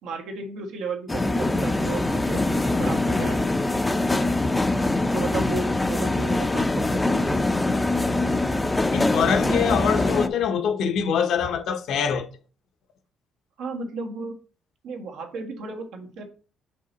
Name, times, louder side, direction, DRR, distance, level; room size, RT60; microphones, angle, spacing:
voice 1, 0.0-2.4 2.8-3.5 4.1-4.3 5.1-7.5 13.6-14.4 14.8-16.2, right 4 dB, 80° right, 1.6 m, -34 dB
sound 1, 1.1-10.3, left 2 dB, 10° left, 0.6 m, -23 dB
voice 2, 8.9-12.3, left 7 dB, 70° left, 1.0 m, -24 dB
5.4 x 5.3 x 4.1 m
cardioid pair, 120°, 0 cm